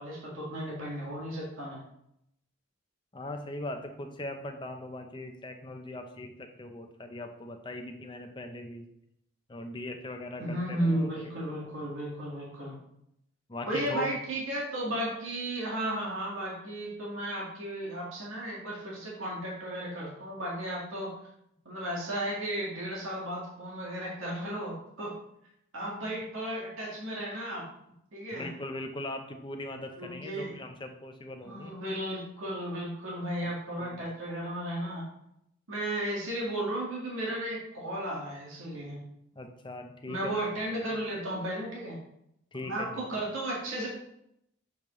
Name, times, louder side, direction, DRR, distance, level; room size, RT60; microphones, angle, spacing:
voice 1, 0.0-1.8 10.4-12.7 13.7-21.1 21.7-25.1 25.7-27.6 28.1-28.5 30.0-30.5 31.4-35.1 35.7-39.0 40.1-42.0 42.6-43.9, right 1 dB, 85° right, -4 dB, 1.8 m, -34 dB
voice 2, 3.1-8.9 9.5-11.1 13.5-14.1 28.3-31.7 33.4-33.5 33.8-33.9 39.3-40.3 42.5-42.9, left 1 dB, 25° left, 5 dB, 0.6 m, -40 dB
7.1 x 5.3 x 3.1 m, 0.78 s
head